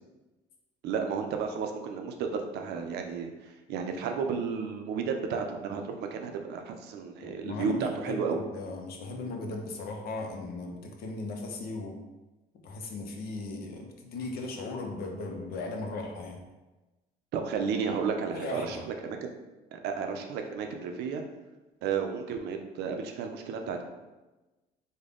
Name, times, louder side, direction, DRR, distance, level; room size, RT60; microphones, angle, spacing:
voice 1, 0.8-8.4 17.3-19.3 19.7-21.2 21.8-23.8, right 6 dB, 80° right, 4 dB, 0.5 m, -32 dB
voice 2, 7.2-12.0 12.6-16.4 18.3-18.8, left 3 dB, 65° left, 3 dB, 0.7 m, -37 dB
3.7 x 2.2 x 3.4 m, 1.1 s
cardioid pair, 110°, 17 cm